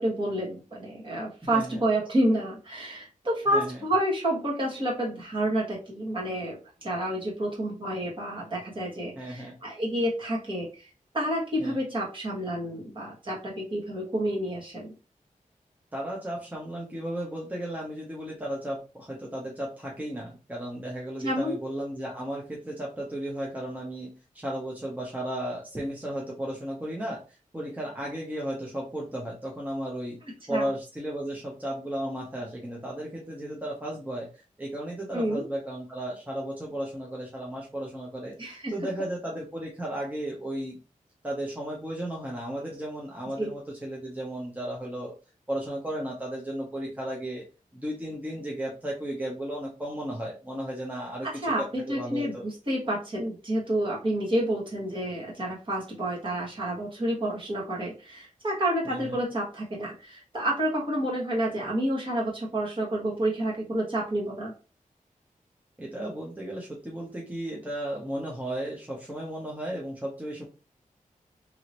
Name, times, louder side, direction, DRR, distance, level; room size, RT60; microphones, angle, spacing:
voice 1, 0.0-10.9 11.1-14.9 21.2-21.6 30.5-30.7 35.1-35.4 38.4-38.7 43.4-43.5 51.4-64.5, right 1 dB, 35° right, -3 dB, 1.4 m, -29 dB
voice 2, 1.4-1.8 3.5-3.8 9.2-9.5 11.6-11.8 15.9-27.2 27.5-30.2 30.5-40.8 41.2-45.1 45.5-47.4 47.7-51.3 51.6-52.4 58.8-59.2 65.8-70.4, right 1 dB, 10° right, -3 dB, 0.7 m, -34 dB
3.0 x 2.8 x 2.8 m, 0.33 s
wide cardioid pair, 110°, 14 cm